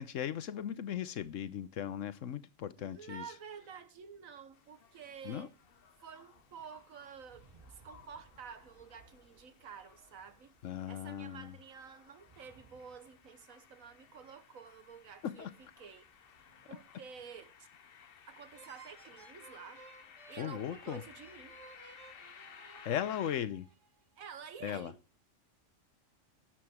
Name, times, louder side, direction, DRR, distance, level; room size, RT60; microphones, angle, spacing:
voice 1, 0.0-3.2 5.2-5.5 10.6-11.5 15.2-15.5 20.4-21.0 22.8-23.7 24.6-24.9, left 10 dB, 75° left, 1.1 m, -37 dB
voice 2, 2.8-5.5 6.0-10.5 10.9-16.1 16.7-17.7 18.3-19.8 20.3-21.6 24.2-25.0, right 6 dB, 85° right, 1.6 m, -50 dB
sound 1, 4.1-17.3, right 3 dB, 40° right, 5.4 m, -66 dB
sound 2, 4.5-23.4, left 8 dB, 50° left, 0.9 m, -58 dB
sound 3, 18.5-24.0, right 4 dB, 65° right, 1.7 m, -58 dB
12.0 x 7.7 x 6.0 m
omnidirectional pair, 1.4 m